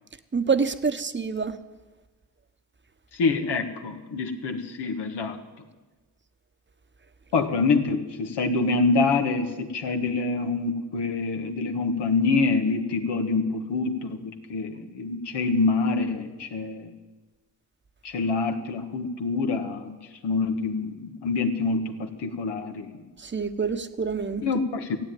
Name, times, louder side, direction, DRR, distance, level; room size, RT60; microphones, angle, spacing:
voice 1, 0.3-1.6 23.2-24.5, right 5 dB, 25° right, 10 dB, 1.1 m, -26 dB
voice 2, 3.1-5.4 7.3-16.9 18.0-20.0 20.2-22.9 24.4-25.0, left 3 dB, 80° left, 5 dB, 1.5 m, -26 dB
15.0 x 8.8 x 9.2 m, 1.2 s
supercardioid pair, 60°, 41 cm